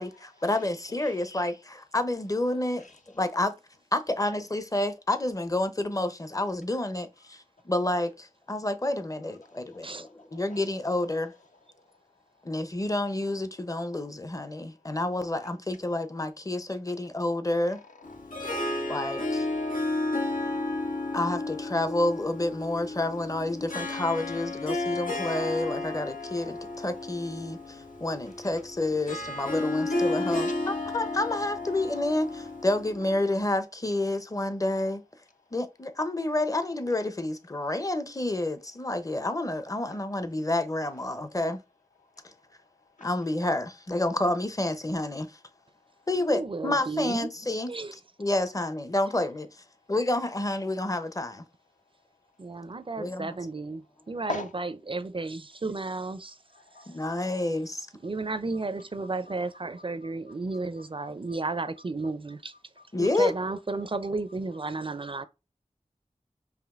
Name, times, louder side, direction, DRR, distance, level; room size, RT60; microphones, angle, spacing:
voice 1, 0.0-2.8 3.1-3.5 3.9-11.3 12.4-17.8 18.9-19.5 21.1-35.0 35.5-41.6 42.2-42.3 43.0-45.4 46.1-47.7 48.2-49.5 49.9-51.4 53.0-53.3 56.9-57.9 62.9-63.3, left 2 dB, 25° left, 0.6 m, -29 dB
voice 2, 9.4-10.6 17.7-17.9 18.4-18.9 30.3-30.5 42.2-42.3 43.0-43.1 54.3-54.5 56.5-57.1 62.8-62.9, left 2 dB, 70° left, 0.7 m, -42 dB
Harp, 18.0-33.3, left 2 dB, 90° left, 1.1 m, -32 dB
voice 3, 46.2-47.3 47.7-47.9 52.4-56.4 58.0-62.5 63.0-65.2, right 3 dB, 40° right, 0.4 m, -33 dB
4.9 x 2.9 x 2.4 m
wide cardioid pair, 60°, 13 cm